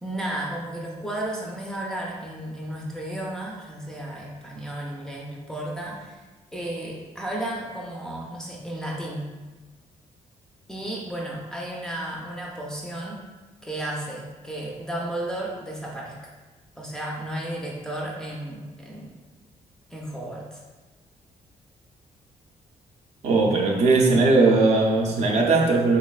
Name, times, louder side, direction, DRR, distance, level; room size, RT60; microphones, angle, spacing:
voice 1, 0.0-6.2 6.5-9.3 10.7-13.2 13.6-16.3 16.8-19.1 19.9-20.6, right 1 dB, 5° left, -3 dB, 0.4 m, -33 dB
voice 2, 23.2-26.0, right 3 dB, 60° right, -1 dB, 0.5 m, -19 dB
3.7 x 3.1 x 2.3 m, 1.2 s
wide cardioid pair, 175°, 13 cm